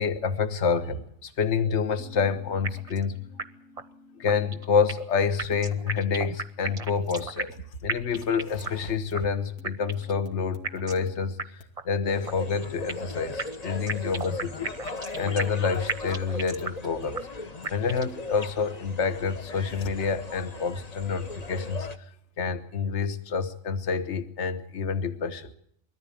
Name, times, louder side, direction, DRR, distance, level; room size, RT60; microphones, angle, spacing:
voice 1, 0.0-3.2 4.2-14.7 15.1-17.2 17.7-21.9 22.4-25.5, left 5 dB, 50° left, 10 dB, 1.5 m, -28 dB
sound 1, 2.0-5.1 5.5-6.2 6.7-6.8 7.5-7.6 8.3-8.4 8.6-8.8 9.1-11.7 12.7-12.8 13.3-13.4 13.7-14.3 14.5-16.2 16.6-16.7 17.0-17.1 17.6-17.7, left 2 dB, 85° left, 2.5 m, -50 dB
sound 2, 2.6-3.1 3.4-3.5 3.8-3.9 4.3-5.1 5.4-7.6 7.9-8.9 9.1-9.2 9.6-10.2 10.6-11.1 11.4-11.5 11.8-11.9 12.3-13.1 13.4-15.6 15.9-16.9 17.1-17.2 17.6-18.2, right 4 dB, 30° right, 0.9 m, -33 dB
sound 3, 12.1-22.0, left 2 dB, 30° left, 1.0 m, -38 dB
22.0 x 14.0 x 8.4 m, 0.68 s
omnidirectional pair, 1.6 m